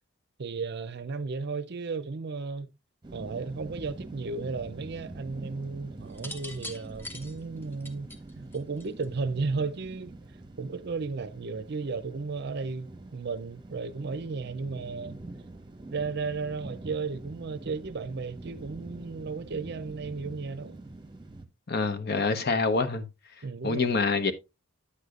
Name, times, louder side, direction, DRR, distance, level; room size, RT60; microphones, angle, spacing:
voice 1, 0.4-2.7 3.1-10.1 10.6-15.2 15.9-20.8 23.4-23.9, right 4 dB, 55° right, 0.5 m, -34 dB
sound 1, 3.0-21.5, right 2 dB, 20° right, 1.1 m, -45 dB
sound 2, 6.1-9.2 10.3-10.7, left 1 dB, 10° left, 0.8 m, -43 dB
voice 2, 21.7-23.1 23.6-24.3, left 4 dB, 50° left, 0.9 m, -26 dB
9.8 x 8.1 x 2.4 m
head